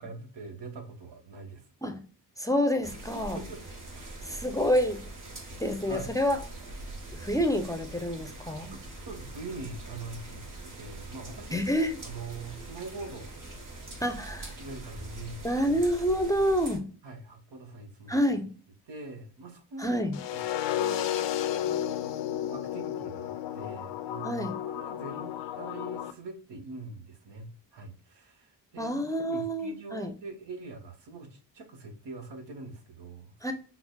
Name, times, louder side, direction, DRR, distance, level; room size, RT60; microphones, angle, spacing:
voice 1, 0.0-1.7 3.3-3.6 3.9-4.3 5.7-6.1 8.7-11.6 12.0-13.4 14.6-15.8 17.0-18.2 18.9-20.0 20.3-21.3 21.6-33.5, right 3 dB, 75° right, 4 dB, 1.0 m, -43 dB
voice 2, 2.4-3.4 4.2-5.0 5.6-6.4 7.1-8.7 11.5-12.0 14.0-14.5 15.4-16.9 18.1-18.5 19.8-20.2 24.2-24.6 28.8-30.1 33.4-33.5, equal, 10° left, 5 dB, 0.5 m, -28 dB
sound 1, 2.8-16.8, right 2 dB, 45° right, 1.2 m, -43 dB
sound 2, 20.1-26.1, left 11 dB, 80° left, 0.5 m, -32 dB
5.8 x 2.0 x 2.3 m, 0.39 s
cardioid pair, 60°, 43 cm